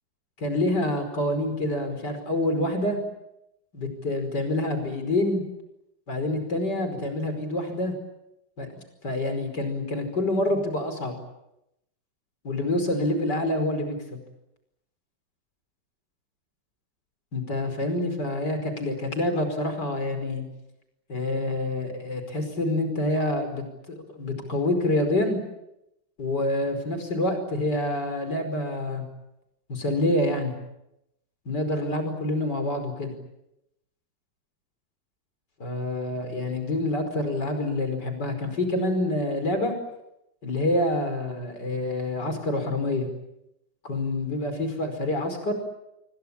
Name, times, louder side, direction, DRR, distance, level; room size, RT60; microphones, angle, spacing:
voice 1, 0.4-3.0 3.7-5.4 6.1-7.9 8.6-8.7 9.0-11.2 12.4-14.2 17.3-20.4 21.1-25.4 26.2-29.0 29.7-30.5 31.5-33.1 35.6-39.7 40.4-43.1 43.8-45.5, left 1 dB, 70° left, 7 dB, 5.7 m, -27 dB
27.0 x 24.0 x 8.8 m, 0.86 s
omnidirectional pair, 1.9 m